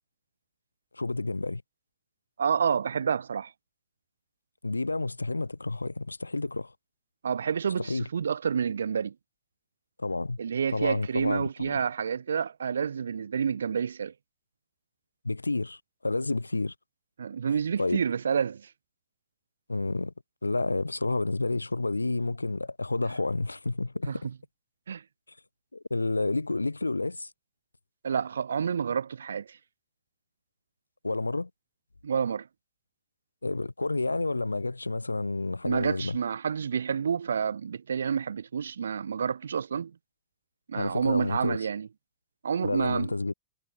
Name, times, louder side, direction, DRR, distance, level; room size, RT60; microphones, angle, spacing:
voice 1, 0.9-1.6 4.6-6.7 7.8-8.1 10.0-10.4 10.7-11.8 15.2-16.7 17.8-18.0 19.7-20.1 20.4-24.2 25.7-27.3 31.0-31.5 33.4-36.2 40.7-41.6 42.6-43.3, left 2 dB, 80° left, 1.1 m, -30 dB
voice 2, 2.4-3.5 7.2-9.1 10.4-14.1 17.2-18.7 24.1-24.3 24.9-25.0 28.0-29.6 32.0-32.5 35.6-39.9 40.7-41.9 42.4-43.1, right 7 dB, 70° right, 0.5 m, -29 dB
figure-of-eight pair, 90°, 0 cm